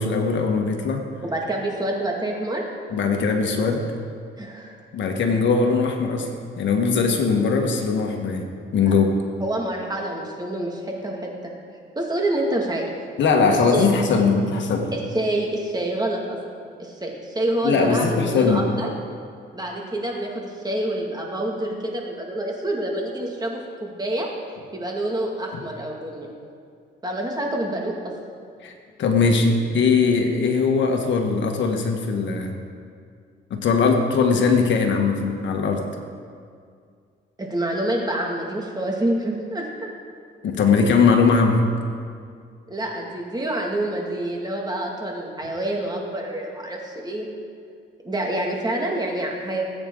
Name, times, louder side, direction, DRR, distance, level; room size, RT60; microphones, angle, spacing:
voice 1, 0.0-1.0 2.9-3.8 4.9-6.3 6.6-8.5 8.7-9.2 13.2-14.9 17.6-18.6 28.6-32.5 33.5-35.9 40.4-41.6, left 4 dB, 70° left, 3 dB, 1.7 m, -20 dB
voice 2, 1.2-2.6 3.4-3.7 4.4-4.8 9.4-11.5 12.0-12.9 13.7-13.9 14.9-16.4 16.8-18.9 19.5-24.3 24.7-26.3 27.0-28.1 37.4-39.9 42.7-47.3 48.0-49.6, right 1 dB, 20° right, -1 dB, 2.4 m, -27 dB
19.5 x 8.9 x 4.0 m, 2.2 s
cardioid pair, 90°, 20 cm